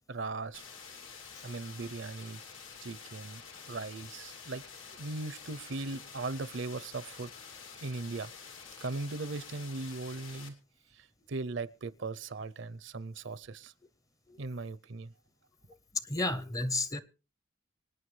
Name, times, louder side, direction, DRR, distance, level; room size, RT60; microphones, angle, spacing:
voice 1, 0.1-0.6 1.4-2.4 2.8-3.4 3.7-4.6 4.9-7.3 7.8-8.3 8.8-10.6 10.9-13.7 14.4-15.1, right 3 dB, 60° right, 0.6 m, -38 dB
sound 1, 0.5-10.5, left 6 dB, 80° left, 2.6 m, -49 dB
voice 2, 16.1-17.0, left 2 dB, 15° left, 0.6 m, -32 dB
26.0 x 9.2 x 3.2 m
head